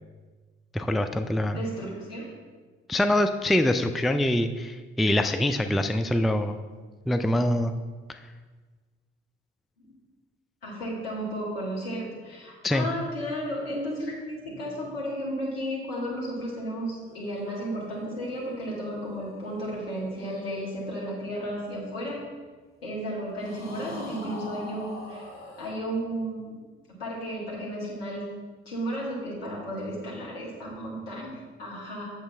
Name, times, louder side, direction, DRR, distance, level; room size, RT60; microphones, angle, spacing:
voice 1, 0.7-1.6 2.9-6.6 7.1-7.7 8.1-8.2 12.6-12.9, left 1 dB, ahead, 8 dB, 0.3 m, -24 dB
voice 2, 1.5-2.3 9.8-10.0 10.6-22.2 22.8-25.3 25.6-26.6 27.0-28.2 28.7-32.1, equal, 75° left, -5 dB, 2.0 m, -33 dB
sound 1, 16.7-22.3 23.4-25.7, left 2 dB, 45° left, 2.4 m, -46 dB
8.2 x 7.3 x 3.5 m, 1.4 s
figure-of-eight pair, 40°, 29 cm